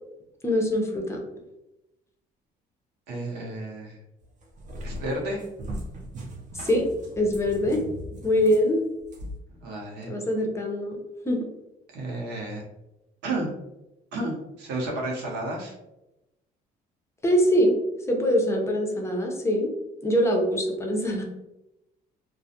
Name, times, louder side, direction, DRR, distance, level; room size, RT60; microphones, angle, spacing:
voice 1, 0.4-1.2 6.5-6.9 7.2-7.8 8.2-8.8 10.1-11.0 11.2-11.5 17.2-17.8 18.1-19.7 20.0-21.2, equal, 15° left, 1 dB, 0.5 m, -23 dB
voice 2, 3.1-4.0 4.8-5.4 9.6-10.1 11.9-12.6 13.2-13.5 14.1-15.7, right 2 dB, 80° right, -1 dB, 0.7 m, -32 dB
Cat, 4.2-9.4, equal, 50° right, 0.6 m, -39 dB
2.3 x 2.0 x 2.7 m, 0.93 s
cardioid pair, 110°, 17 cm